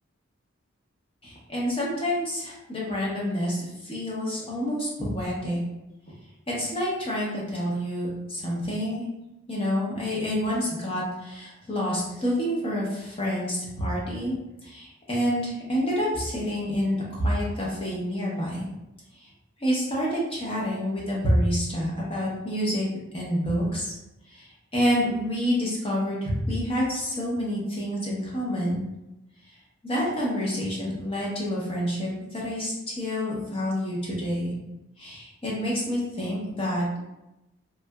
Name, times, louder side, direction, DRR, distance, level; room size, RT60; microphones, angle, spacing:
voice 1, 1.2-5.6 6.5-9.0 9.5-14.4 14.6-18.7 19.2-19.3 19.6-22.9 23.1-23.9 24.3-28.8 29.8-34.5 35.0-37.0, equal, 25° left, -5 dB, 0.7 m, -28 dB
3.2 x 2.7 x 2.2 m, 0.92 s
head